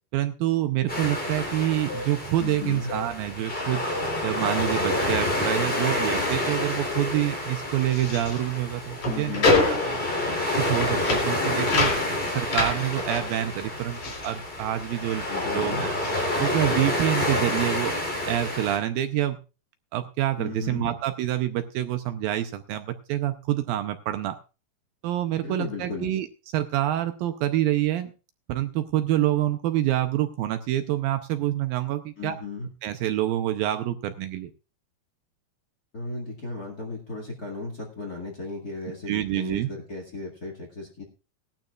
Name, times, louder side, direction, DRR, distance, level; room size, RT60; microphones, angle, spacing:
voice 1, 0.1-3.8 4.2-9.6 9.9-10.0 10.6-11.9 12.3-15.9 16.4-18.0 18.3-19.4 19.9-24.4 25.0-26.3 26.5-28.1 28.5-32.3 32.8-34.5 39.1-39.7, right 13 dB, 75° right, 9 dB, 2.3 m, -27 dB
sound 1, 0.9-18.8, left 1 dB, 15° left, 3.0 m, -29 dB
sound 2, 1.9-2.2 2.9-3.2 3.9-4.2 4.9-5.2 5.9-6.2 6.9-7.2, left 3 dB, 80° left, 3.8 m, -36 dB
voice 2, 2.4-3.0 9.0-9.6 15.3-15.9 20.4-20.9 25.4-26.1 32.2-32.7 35.9-41.0, left 3 dB, 30° left, 1 dB, 1.8 m, -35 dB
sound 3, 7.8-15.3 15.5-17.0, left 3 dB, 50° left, 4.0 m, -28 dB
18.5 x 12.0 x 2.4 m, 0.31 s
omnidirectional pair, 4.5 m